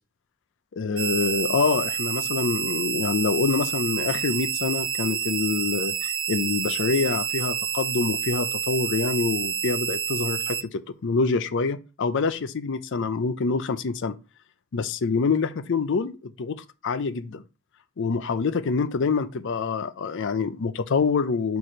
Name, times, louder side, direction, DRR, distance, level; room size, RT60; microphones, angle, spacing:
voice 1, 0.7-14.2 14.7-17.4 18.0-21.6, left 4 dB, 60° left, 0.5 m, -26 dB
sound 1, 1.0-10.6, right 8 dB, 25° right, 0.5 m, -28 dB
4.7 x 4.2 x 5.1 m
head